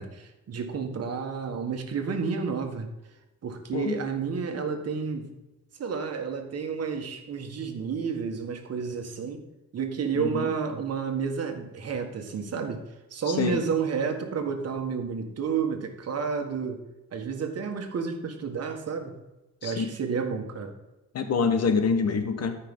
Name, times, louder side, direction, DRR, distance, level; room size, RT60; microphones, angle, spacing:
voice 1, 0.0-2.9 3.4-5.3 5.8-9.4 9.7-12.8 13.1-16.8 17.1-19.2 19.6-20.7, right 6 dB, 55° right, 5 dB, 1.6 m, -30 dB
voice 2, 10.1-10.5 13.3-13.6 19.6-19.8 21.1-22.6, left 5 dB, 55° left, 7 dB, 1.3 m, -26 dB
13.5 x 5.7 x 3.8 m, 1.0 s
cardioid pair, 90°, 30 cm